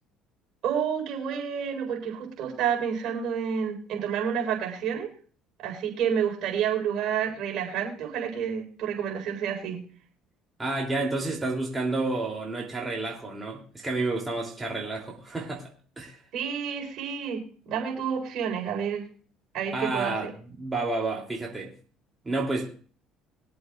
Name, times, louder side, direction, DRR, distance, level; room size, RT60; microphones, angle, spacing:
voice 1, 0.6-5.1 5.6-9.8 16.3-19.1 19.5-20.1, right 8 dB, 65° right, 1 dB, 4.4 m, -29 dB
voice 2, 10.6-15.6 16.0-16.2 19.7-21.7 22.2-22.7, right 2 dB, 20° right, -2 dB, 3.1 m, -30 dB
22.5 x 7.9 x 2.5 m, 0.42 s
supercardioid pair, 80°, 0 cm